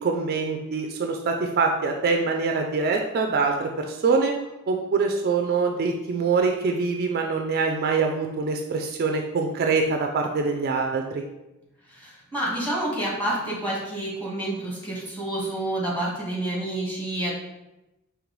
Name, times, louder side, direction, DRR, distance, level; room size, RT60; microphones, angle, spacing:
voice 1, 0.0-4.3 4.7-11.2, right 4 dB, 45° right, 3 dB, 0.3 m, -24 dB
voice 2, 11.9-17.3, right 1 dB, 5° left, -6 dB, 1.4 m, -29 dB
5.2 x 3.2 x 3.1 m, 0.96 s
head